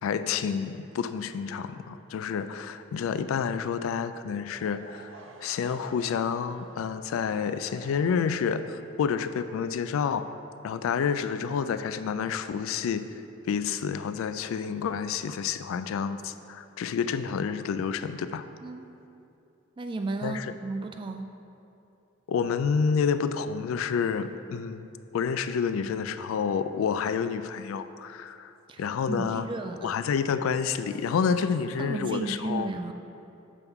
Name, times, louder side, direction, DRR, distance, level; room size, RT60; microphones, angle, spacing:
voice 1, 0.0-5.1 5.4-10.3 10.6-13.2 13.5-18.4 20.2-20.5 22.3-28.5 28.8-29.4 29.8-32.7, left 6 dB, 85° left, 11 dB, 0.3 m, -29 dB
Laughter / Crowd, 4.4-10.4, right 2 dB, 65° right, 0.6 m, -51 dB
voice 2, 19.8-21.3 28.7-29.9 31.8-32.9, right 3 dB, 25° right, 5 dB, 0.3 m, -34 dB
6.8 x 6.1 x 3.6 m, 2.7 s
head